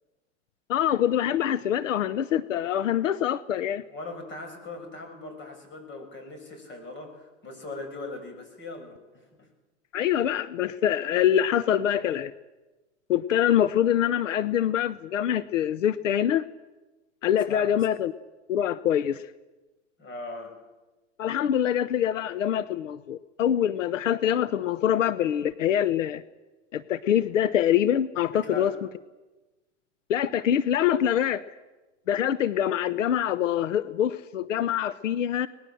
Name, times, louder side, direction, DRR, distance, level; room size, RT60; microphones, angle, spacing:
voice 1, 0.7-3.8 9.9-12.3 13.1-16.5 17.2-18.1 18.5-19.2 21.2-26.2 26.7-28.7 30.1-31.4 32.1-35.5, left 10 dB, 90° left, 16 dB, 0.9 m, -24 dB
voice 2, 3.8-9.3 17.5-17.7 20.0-20.6 28.3-28.8, left 2 dB, 30° left, 5 dB, 7.5 m, -39 dB
23.5 x 20.0 x 7.8 m, 1.1 s
hypercardioid pair, 120°, 37 cm